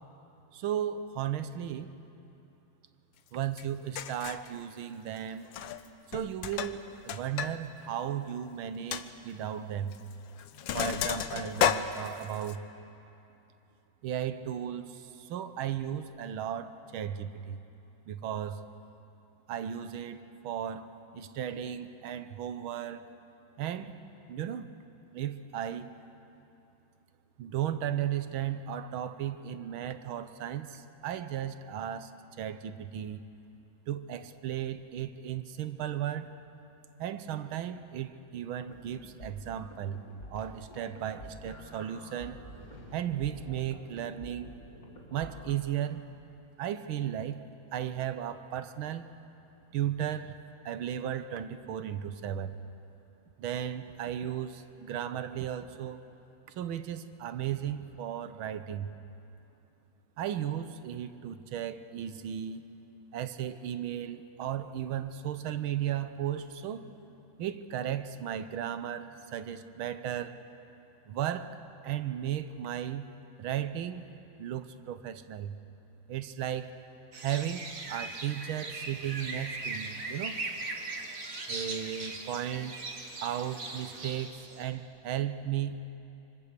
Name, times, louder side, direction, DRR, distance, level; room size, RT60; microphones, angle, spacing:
voice 1, 0.5-1.9 3.3-5.5 6.1-10.0 10.7-12.6 14.0-17.6 18.1-18.6 19.5-23.1 23.6-24.0 24.3-24.7 25.1-25.9 27.4-33.2 33.9-36.3 37.0-40.0 40.3-42.4 42.9-44.5 45.1-46.0 46.6-47.4 47.7-49.1 49.7-50.4 50.6-52.6 53.4-56.0 56.5-58.9 60.2-62.6 63.1-66.8 67.4-70.4 71.1-71.6 71.8-73.1 73.4-74.1 74.4-75.5 76.1-76.7 77.2-80.4 81.5-82.7 83.2-85.7, right 10 dB, 85° right, 11 dB, 1.7 m, -35 dB
Sink (filling or washing), 3.6-3.7 3.9-4.5 5.4-5.9 6.1-7.5 7.8-7.9 8.3-8.4 8.9-9.0 9.9-10.1 10.4-12.5, left 9 dB, 75° left, 1.5 m, -32 dB
sound 1, 38.7-45.5, left 1 dB, 45° left, 2.8 m, -49 dB
sound 2, 77.1-84.7, right 3 dB, 45° right, 2.1 m, -39 dB
25.5 x 24.5 x 6.8 m, 2.8 s
omnidirectional pair, 2.2 m